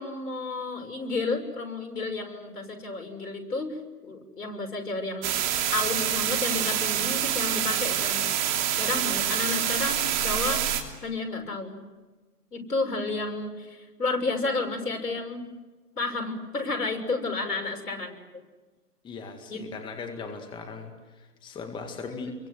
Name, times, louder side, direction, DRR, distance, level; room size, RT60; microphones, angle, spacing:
voice 1, 0.0-3.7 4.0-5.3 5.7-8.2 8.8-10.6 11.0-11.8 12.5-15.5 16.0-18.2 19.5-19.6 22.1-22.3, left 3 dB, 80° left, 3 dB, 6.8 m, -31 dB
sound 1, 5.2-10.8, right 10 dB, 30° right, 3.0 m, -26 dB
voice 2, 19.0-22.3, left 5 dB, 10° left, 5 dB, 2.1 m, -39 dB
28.5 x 23.5 x 7.9 m, 1.3 s
hypercardioid pair, 145°, 46 cm